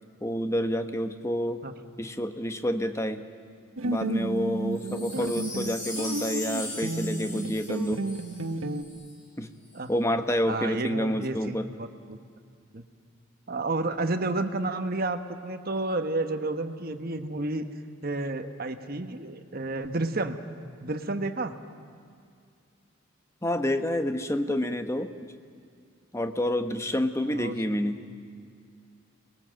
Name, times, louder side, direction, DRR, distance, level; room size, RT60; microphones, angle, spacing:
voice 1, 0.2-1.6 2.0-3.2 3.8-8.0 9.4-9.5 9.9-11.7 23.4-25.3 26.1-28.0, equal, 15° left, 7 dB, 1.1 m, -28 dB
sound 1, 3.8-8.8, right 2 dB, 85° right, 1.4 m, -32 dB
Wind chime, 4.7-9.1 9.6-9.7, left 2 dB, 40° left, 7.6 m, -39 dB
voice 2, 10.5-12.2 12.7-12.8 13.5-17.7 18.0-20.4 20.8-21.5 27.2-27.6, right 2 dB, 45° right, 7 dB, 1.2 m, -31 dB
30.0 x 21.5 x 7.6 m, 2.2 s
head